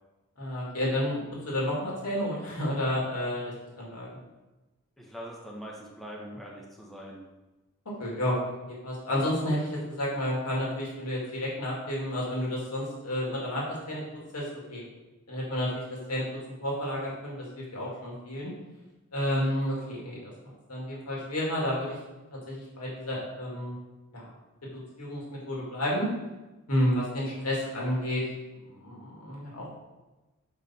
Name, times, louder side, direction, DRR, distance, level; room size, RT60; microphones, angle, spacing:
voice 1, 0.4-4.2 8.0-8.4 8.7-14.8 15.3-18.5 19.1-22.0 22.3-23.8 24.1-24.3 24.7-26.1 26.7-28.2 28.6-29.7, left 1 dB, 90° left, -4 dB, 2.0 m, -31 dB
voice 2, 5.0-7.2, equal, ahead, -3 dB, 1.0 m, -42 dB
6.8 x 4.9 x 4.2 m, 1.1 s
head